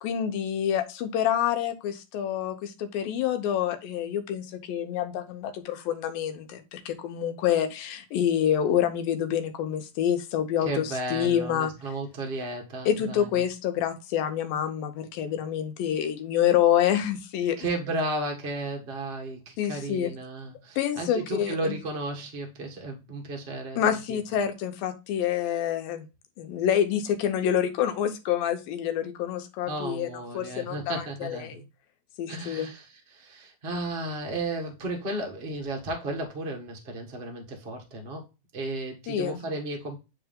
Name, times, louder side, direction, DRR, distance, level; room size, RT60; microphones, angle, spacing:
voice 1, 0.0-11.7 12.9-17.6 19.6-20.1 20.8-21.8 23.8-26.1 26.4-30.1 30.3-31.6 32.2-32.7 39.1-39.4, left 10 dB, 90° left, 2.7 m, -27 dB
voice 2, 10.6-13.4 17.6-24.2 29.7-31.6 32.3-38.3 38.5-40.0, right 2 dB, 75° right, 0.5 m, -34 dB
9.8 x 3.4 x 3.6 m
omnidirectional pair, 4.0 m